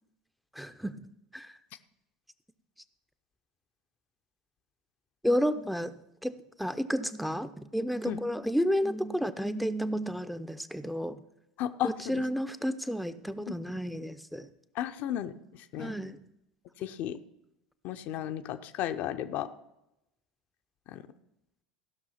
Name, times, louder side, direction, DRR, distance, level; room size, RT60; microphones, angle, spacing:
voice 1, 0.6-1.0 1.3-1.5 5.2-5.9 6.2-6.3 6.6-11.2 11.8-14.5 15.8-16.2, equal, ahead, 11 dB, 0.7 m, -31 dB
voice 2, 11.6-12.2 13.5-13.6 14.7-15.3 15.7-15.9 16.8-17.2 17.8-19.5 20.9-21.1, left 11 dB, 50° left, 9 dB, 0.7 m, -34 dB
14.5 x 6.2 x 5.7 m, 0.88 s
figure-of-eight pair, 75°, 4 cm